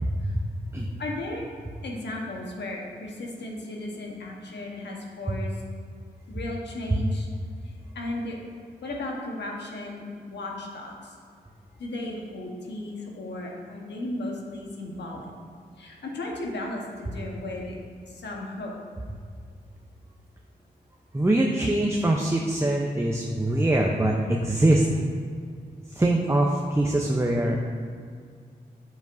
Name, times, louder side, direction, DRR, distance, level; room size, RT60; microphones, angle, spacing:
voice 1, 0.1-0.4 0.7-0.9 6.9-7.0 21.1-24.9 25.9-27.6, right 1 dB, 15° right, 0 dB, 0.7 m, -23 dB
voice 2, 1.0-1.5 1.8-5.6 6.3-7.3 7.9-8.4 8.8-11.1 11.8-15.3 15.8-17.8 18.1-18.7, left 1 dB, 75° left, -1 dB, 1.2 m, -35 dB
8.1 x 7.2 x 2.7 m, 2.1 s
supercardioid pair, 40°, 18 cm